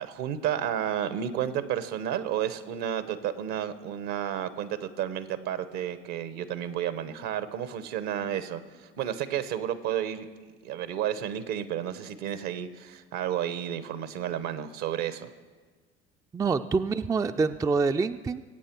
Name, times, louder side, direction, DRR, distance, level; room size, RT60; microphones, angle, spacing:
voice 1, 0.0-8.6 9.0-10.3 10.6-15.3, right 10 dB, 65° right, 13 dB, 1.0 m, -31 dB
voice 2, 16.3-18.4, right 4 dB, 10° right, 10 dB, 0.4 m, -26 dB
22.0 x 8.7 x 4.6 m, 1.4 s
hypercardioid pair, 65°, 32 cm